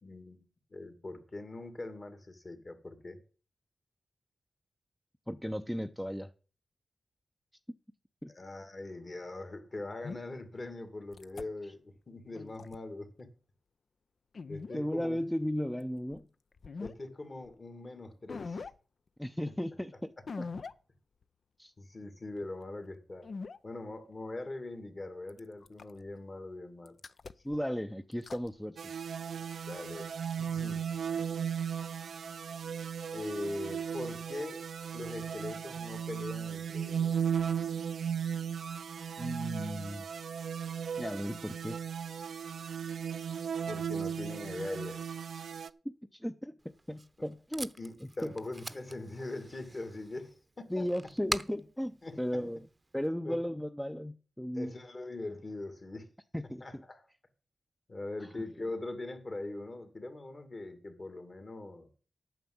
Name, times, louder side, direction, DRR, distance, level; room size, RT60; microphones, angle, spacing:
voice 1, 0.0-0.4 0.7-3.2 8.3-13.3 14.5-15.2 16.8-18.7 21.8-23.3 23.6-27.0 29.7-30.1 30.4-30.9 33.1-34.6 34.9-37.2 43.7-45.2 47.8-50.9 52.0-52.5 53.2-53.4 54.5-56.1 56.6-57.0 57.9-61.9, left 2 dB, 45° left, 2.3 m, -42 dB
voice 2, 5.3-6.3 8.2-8.3 14.7-16.3 19.2-20.1 20.4-20.5 21.6-21.7 27.4-29.1 39.2-40.0 41.0-41.8 45.8-46.5 46.9-47.7 48.2-48.3 50.7-52.6 52.9-54.7 56.3-56.8, equal, 5° left, 0.6 m, -35 dB
sound 1, 10.0-10.2 11.1-11.4 12.3-12.8 14.3-14.8 16.1-16.2 16.6-16.9 17.5-17.6 18.3-18.7 20.3-20.7 21.2-21.3 23.2-23.6 25.3-26.0 26.8-27.6 28.1-28.5, left 4 dB, 65° left, 0.5 m, -41 dB
sound 2, 28.8-45.7, right 8 dB, 90° right, 0.5 m, -36 dB
Packing tape duct tape, 46.6-53.1, right 2 dB, 25° right, 0.8 m, -44 dB
9.1 x 6.9 x 7.7 m
cardioid pair, 75°, 0 cm